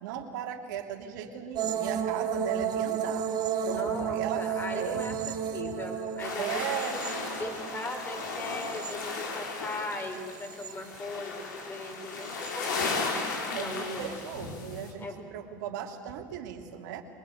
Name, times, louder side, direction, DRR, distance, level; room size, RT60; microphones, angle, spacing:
voice 1, 0.0-3.3 3.6-4.5 4.7-5.2 6.4-7.0 13.5-17.0, right 9 dB, 75° right, 4 dB, 2.7 m, -37 dB
sound 1, 1.6-9.7 10.1-11.0 12.2-12.5, right 8 dB, 45° right, 2.2 m, -33 dB
voice 2, 3.6-7.0 7.4-13.0 13.6-14.3 15.0-15.2, left 2 dB, 20° left, 5 dB, 4.6 m, -39 dB
sound 2, 6.2-14.9, left 3 dB, 85° left, 4.0 m, -35 dB
23.5 x 20.5 x 9.1 m, 2.3 s
hypercardioid pair, 90°, 10 cm